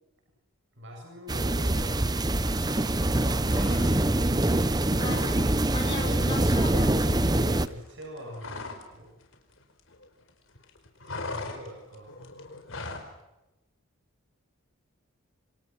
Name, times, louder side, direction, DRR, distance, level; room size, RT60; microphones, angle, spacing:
voice 1, 0.8-4.3 4.7-4.9 7.7-9.2 11.0-12.1, equal, 55° right, 1 dB, 7.9 m, -45 dB
sound 1, 1.3-7.7, right 1 dB, 20° right, 0.9 m, -24 dB
sound 2, 3.4-4.3 4.6-5.4 5.7-5.9 6.2-9.0 9.2-10.3 10.6-13.1, left 3 dB, 60° left, 4.7 m, -40 dB
voice 2, 5.0-5.4 5.7-7.6, left 2 dB, 25° left, -1 dB, 6.1 m, -37 dB
28.0 x 27.0 x 6.1 m, 0.94 s
head